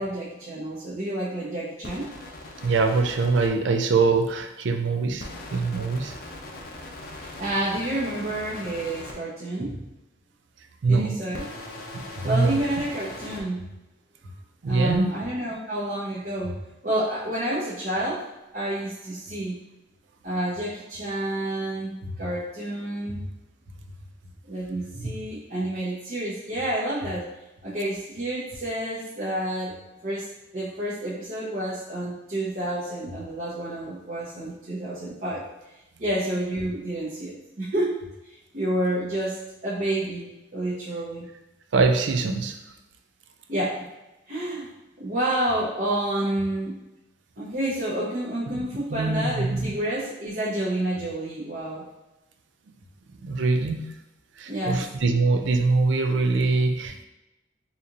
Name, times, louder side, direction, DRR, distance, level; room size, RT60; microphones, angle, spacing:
voice 1, 0.0-2.1 7.1-9.8 10.8-11.4 12.0-13.7 14.7-18.2 18.5-19.6 20.2-23.2 24.4-27.3 27.6-29.7 30.0-35.4 36.0-37.9 38.3-39.4 39.6-41.3 43.5-43.8 44.3-44.7 45.0-46.7 47.4-51.9 54.5-54.9, right 1 dB, 50° right, -10 dB, 0.9 m, -29 dB
sound 1, 1.8-3.5 5.2-9.1 11.3-13.4, left 2 dB, 50° left, 0.5 m, -40 dB
voice 2, 2.6-5.3 5.5-6.2 10.8-11.2 11.9-12.6 14.6-15.1 41.7-42.6 48.9-49.8 53.2-53.9 54.4-57.0, right 3 dB, 75° right, 6 dB, 0.4 m, -23 dB
4.1 x 3.0 x 2.5 m, 0.98 s
head